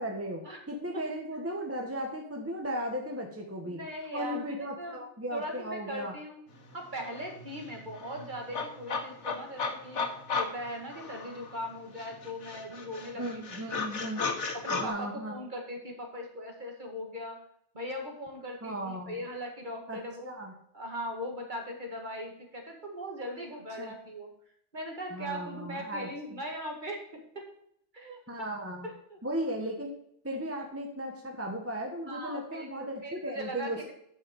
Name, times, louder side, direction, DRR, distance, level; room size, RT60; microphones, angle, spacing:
voice 1, 0.0-3.8 4.1-6.1 13.1-14.2 14.7-15.4 18.6-19.2 19.9-20.5 23.8-23.9 25.1-26.4 28.3-28.9 29.2-29.9 30.2-33.9, equal, 10° right, 1 dB, 1.2 m, -36 dB
voice 2, 3.6-4.5 4.8-5.0 5.3-6.4 6.7-10.0 10.4-13.2 13.7-13.8 14.2-14.3 14.5-17.4 17.7-20.3 20.7-24.3 24.7-27.0 27.9-28.2 28.8-29.2 32.1-33.9, equal, 45° right, 1 dB, 2.3 m, -39 dB
sound 1, 6.7-6.8 7.0-11.6 12.0-14.9, left 4 dB, 85° left, 1.6 m, -35 dB
10.5 x 5.7 x 5.3 m, 0.71 s
omnidirectional pair, 1.2 m